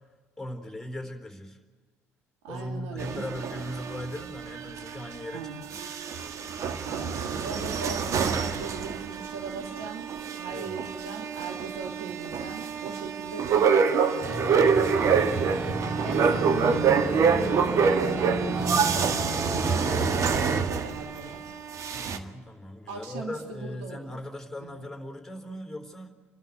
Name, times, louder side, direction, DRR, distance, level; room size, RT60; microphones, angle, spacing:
voice 1, 0.4-1.6 2.5-5.8 10.5-10.8 16.1-16.5 21.9-26.3, left 1 dB, 5° left, 4 dB, 3.8 m, -39 dB
voice 2, 2.4-3.3 5.3-5.7 6.8-10.1 10.4-17.7 17.9-21.4 22.9-24.2 24.6-24.8, right 4 dB, 70° right, 2 dB, 2.9 m, -39 dB
sound 1, 3.0-5.3 5.6-21.3 21.7-22.2, right 6 dB, 45° right, 1.6 m, -27 dB
sound 2, 14.2-20.7, right 3 dB, 25° right, 1.7 m, -30 dB
29.5 x 12.5 x 9.2 m, 1.5 s
figure-of-eight pair, 55°, 7 cm